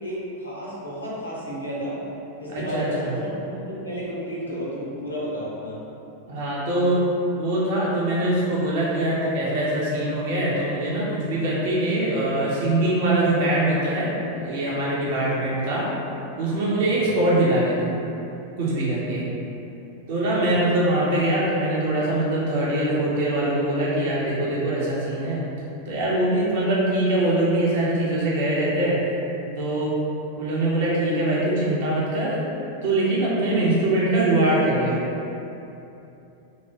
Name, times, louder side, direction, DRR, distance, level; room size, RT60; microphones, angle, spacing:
voice 1, 0.0-2.0 2.4-5.8 16.9-17.1 19.2-19.4 20.3-20.5, equal, 85° left, -7 dB, 0.7 m, -32 dB
voice 2, 2.5-3.1 6.3-7.0 7.4-15.9 16.4-17.8 18.6-19.2 20.1-25.4 25.9-29.0 29.6-29.9 30.4-32.4 32.8-35.0, right 1 dB, 55° right, -6 dB, 0.8 m, -23 dB
2.9 x 2.4 x 2.8 m, 2.9 s
figure-of-eight pair, 90°, 0 cm